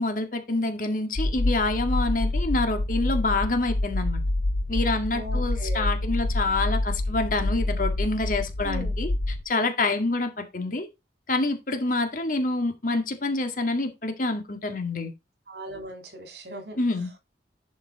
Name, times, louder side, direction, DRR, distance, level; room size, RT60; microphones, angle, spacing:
voice 1, 0.0-4.2 4.7-10.9 11.3-15.1 16.8-17.1, left 2 dB, 50° left, 2.0 m, -27 dB
sound 1, 1.2-9.4, left 2 dB, 85° left, 0.8 m, -27 dB
voice 2, 5.1-5.9 8.6-8.9 15.5-16.8, right 1 dB, 70° right, 3.0 m, -38 dB
11.5 x 5.4 x 3.6 m
head